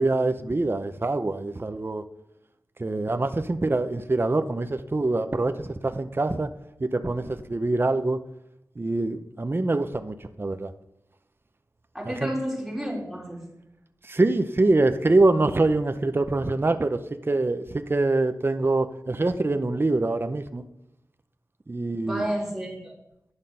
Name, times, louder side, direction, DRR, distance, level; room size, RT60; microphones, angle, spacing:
voice 1, 0.0-2.0 2.8-6.5 6.8-8.2 8.8-10.7 12.1-12.3 14.0-17.0 17.3-20.6 21.7-22.2, right 2 dB, 35° right, 9 dB, 0.6 m, -24 dB
voice 2, 11.9-13.5 22.0-22.9, equal, 5° right, -4 dB, 3.9 m, -31 dB
9.7 x 5.8 x 5.3 m, 0.86 s
wide cardioid pair, 60°, 7 cm